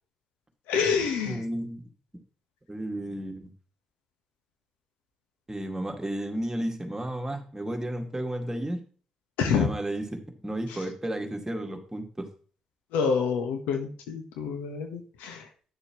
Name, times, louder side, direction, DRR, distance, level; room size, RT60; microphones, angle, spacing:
voice 1, 0.7-1.4 9.4-9.7 12.9-15.4, left 6 dB, 90° left, 6 dB, 1.2 m, -27 dB
voice 2, 1.2-1.9 2.7-3.5 5.5-8.8 9.5-12.3, right 1 dB, 15° right, 3 dB, 2.0 m, -33 dB
10.0 x 6.7 x 3.0 m, 0.42 s
supercardioid pair, 50°, 3 cm